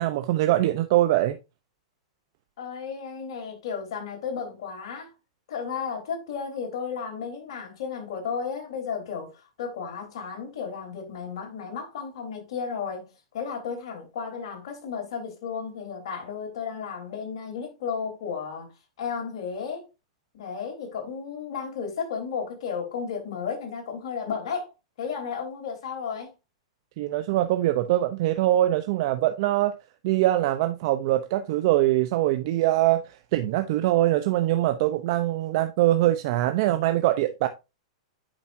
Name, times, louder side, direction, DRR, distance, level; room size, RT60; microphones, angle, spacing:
voice 1, 0.0-1.4 27.0-29.7 30.0-37.5, right 14 dB, 55° right, 0.7 m, -23 dB
voice 2, 2.6-5.1 5.5-18.7 19.0-19.9 20.3-24.7 25.0-26.3, left 6 dB, 65° left, 3.7 m, -33 dB
8.9 x 5.9 x 2.7 m
hypercardioid pair, 135°, 3 cm